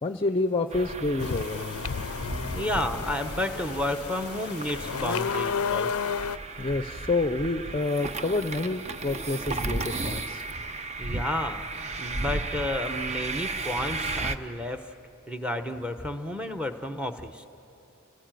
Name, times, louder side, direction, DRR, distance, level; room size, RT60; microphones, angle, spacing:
voice 1, 0.0-1.8 6.6-10.4, left 2 dB, 25° left, 8 dB, 0.6 m, -28 dB
sound 1, 0.7-14.4, right 2 dB, 30° right, 0.7 m, -34 dB
sound 2, 1.2-6.4, left 6 dB, 70° left, 0.5 m, -32 dB
voice 2, 2.5-6.1 11.0-14.9 15.3-17.5, left 1 dB, 5° right, 7 dB, 1.0 m, -31 dB
30.0 x 18.5 x 9.2 m, 3.0 s
head